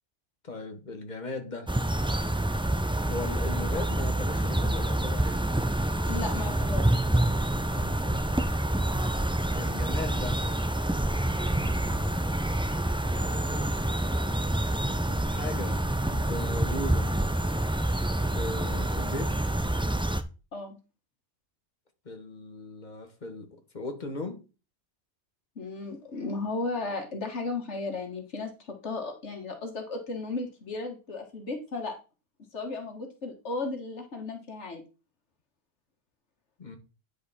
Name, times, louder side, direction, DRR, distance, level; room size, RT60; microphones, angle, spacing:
voice 1, 0.4-1.7 3.0-5.5 7.7-8.5 9.5-10.4 11.3-12.1 13.1-13.8 15.0-17.1 18.2-19.4 22.0-23.5 23.7-24.4 36.6-36.8, left 2 dB, 40° left, 1.7 m, -38 dB
sound 1, 1.7-20.2, right 1 dB, 10° right, 0.3 m, -27 dB
voice 2, 6.0-6.9 20.5-20.8 25.6-28.5 28.8-32.0 32.5-34.8, left 3 dB, 80° left, 1.9 m, -35 dB
9.9 x 5.0 x 4.2 m
omnidirectional pair, 1.2 m